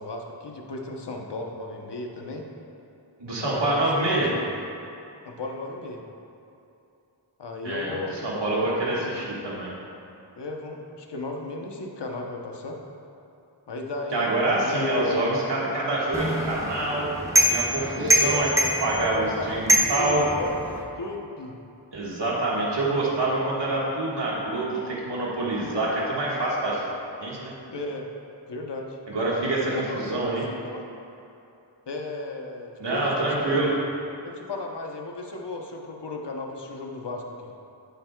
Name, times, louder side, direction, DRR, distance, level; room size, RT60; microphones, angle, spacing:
voice 1, 0.0-2.5 3.3-4.4 5.2-6.0 7.4-8.2 8.6-8.9 10.4-12.8 13.7-14.4 14.6-15.2 17.9-18.6 19.0-21.6 27.7-28.1 28.5-29.0 29.7-30.1 30.5-30.8 31.9-33.5 34.2-37.5, left 3 dB, 65° left, 1 dB, 1.0 m, -35 dB
voice 2, 3.2-4.3 7.6-9.7 14.1-17.1 17.5-20.2 21.9-26.8 27.2-27.5 29.1-30.4 32.8-33.7, right 2 dB, 65° right, -5 dB, 1.7 m, -26 dB
sound 1, 16.1-20.8, equal, 5° right, 1.2 m, -24 dB
10.5 x 8.9 x 2.3 m, 2.8 s
wide cardioid pair, 45°, 45 cm